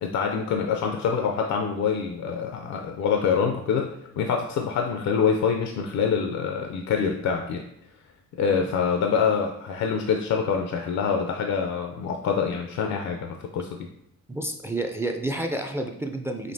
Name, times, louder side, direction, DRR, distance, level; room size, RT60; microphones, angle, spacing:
voice 1, 0.0-7.7 8.4-13.9, left 6 dB, 65° left, 3 dB, 0.5 m, -25 dB
voice 2, 14.3-16.5, right 1 dB, 10° right, 4 dB, 0.4 m, -30 dB
5.1 x 2.9 x 2.7 m, 0.83 s
cardioid pair, 90°, 30 cm